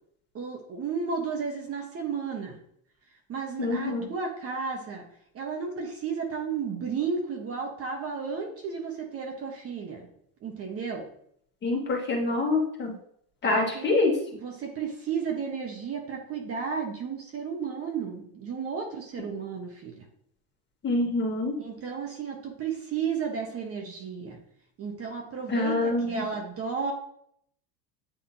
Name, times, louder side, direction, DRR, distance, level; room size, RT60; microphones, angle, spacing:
voice 1, 0.3-2.6 3.3-5.0 5.3-10.1 10.4-11.1 13.4-13.9 14.4-20.0 21.6-24.4 24.8-26.9, right 5 dB, 35° right, 2 dB, 1.2 m, -33 dB
voice 2, 3.6-4.1 11.6-12.9 13.4-14.1 20.8-21.5 25.5-26.2, left 2 dB, 25° left, -1 dB, 1.7 m, -26 dB
9.1 x 3.6 x 2.8 m, 0.68 s
supercardioid pair, 115°, 40 cm